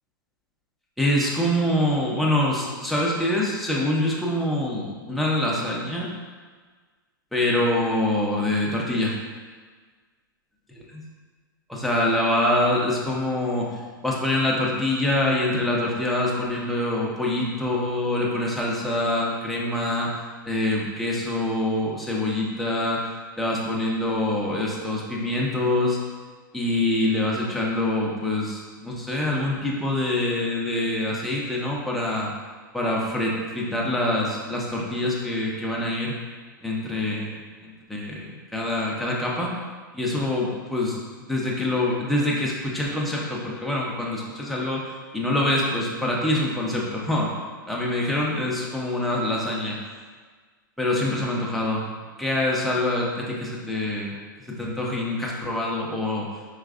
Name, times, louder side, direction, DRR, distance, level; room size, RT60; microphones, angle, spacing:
voice 1, 1.0-6.1 7.3-9.2 11.7-20.1 20.5-23.1 23.4-26.0 26.5-32.3 32.7-36.1 36.6-39.5 39.9-44.8 45.1-47.4 47.7-49.8 50.8-51.9 52.2-54.1 54.5-56.3, left 1 dB, ahead, -4 dB, 0.7 m, -25 dB
4.6 x 3.1 x 2.4 m, 1.5 s
hypercardioid pair, 120°, 11 cm